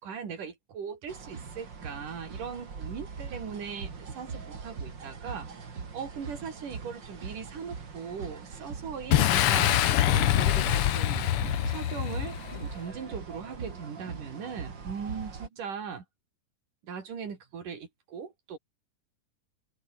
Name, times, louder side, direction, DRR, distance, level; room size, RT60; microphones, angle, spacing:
voice 1, 0.0-11.3 11.7-16.0 16.8-18.6, right 6 dB, 70° right, 5.3 m, -39 dB
sound 1, 1.1-15.5, right 5 dB, 35° right, 3.0 m, -41 dB
Boom, 9.1-12.7, left 13 dB, 85° left, 1.2 m, -25 dB
omnidirectional pair, 3.8 m